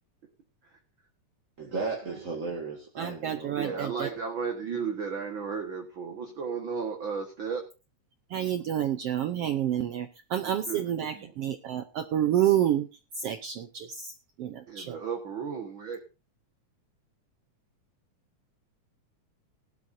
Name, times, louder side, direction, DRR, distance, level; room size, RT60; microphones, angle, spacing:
voice 1, 1.6-3.8, right 3 dB, 30° right, 0 dB, 1.8 m, -35 dB
voice 2, 3.0-4.1 8.3-12.9 13.2-15.0, right 11 dB, 85° right, 9 dB, 1.3 m, -29 dB
voice 3, 3.6-7.7 10.4-11.3 14.7-16.0, right 6 dB, 45° right, 4 dB, 2.0 m, -34 dB
18.0 x 12.5 x 2.7 m, 0.29 s
omnidirectional pair, 3.8 m